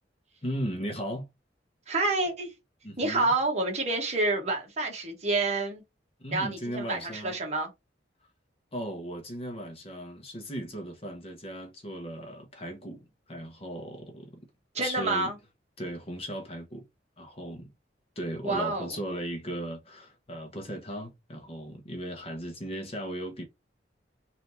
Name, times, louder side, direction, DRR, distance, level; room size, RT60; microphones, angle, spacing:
voice 1, 0.4-1.3 2.8-3.3 6.2-7.4 8.7-14.3 14.8-15.3 15.8-16.8 17.2-17.7 18.2-23.4, equal, 35° left, 0.9 m, -37 dB
voice 2, 1.9-2.5 3.0-5.8 6.3-7.7 14.7-15.3 18.4-18.9, right 2 dB, 40° right, 1.4 m, -28 dB
3.3 x 2.8 x 4.2 m
head